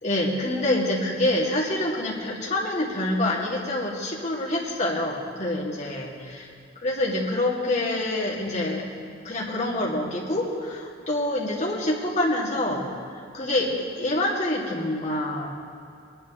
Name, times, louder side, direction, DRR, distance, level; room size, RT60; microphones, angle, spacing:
voice 1, 0.0-6.5 6.8-8.9 9.2-12.9 13.3-13.7 14.0-15.5, left 1 dB, 40° left, -5 dB, 2.3 m, -26 dB
22.0 x 11.0 x 3.1 m, 2.4 s
head